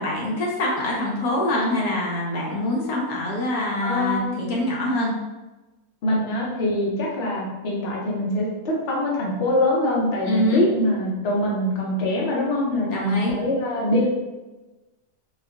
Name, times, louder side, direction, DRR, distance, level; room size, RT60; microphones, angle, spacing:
voice 1, 0.0-5.2 10.2-10.6 12.9-13.4, left 1 dB, 75° left, -2 dB, 1.1 m, -24 dB
voice 2, 3.8-4.8 6.0-14.1, left 1 dB, 50° left, -3 dB, 0.9 m, -24 dB
4.5 x 2.3 x 2.4 m, 1.1 s
omnidirectional pair, 1.6 m